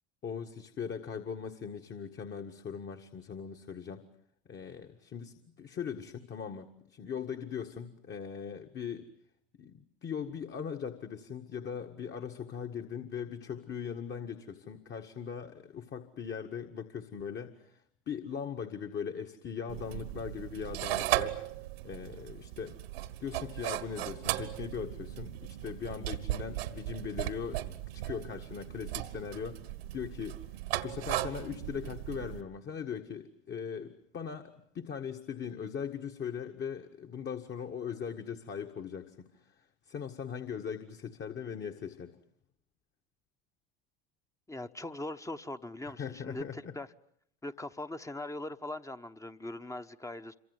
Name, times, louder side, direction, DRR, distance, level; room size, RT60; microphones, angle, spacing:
voice 1, 0.2-4.0 4.5-9.1 9.6-21.5 21.8-22.8 23.2-30.4 30.8-42.2 45.9-46.7, left 7 dB, 35° left, 1.8 m, -40 dB
sound 1, 19.7-32.4, right 15 dB, 75° right, 1.6 m, -37 dB
voice 2, 44.5-46.9 47.4-50.3, left 2 dB, 10° left, 1.1 m, -41 dB
27.0 x 24.5 x 8.2 m
hypercardioid pair, 80°, 30 cm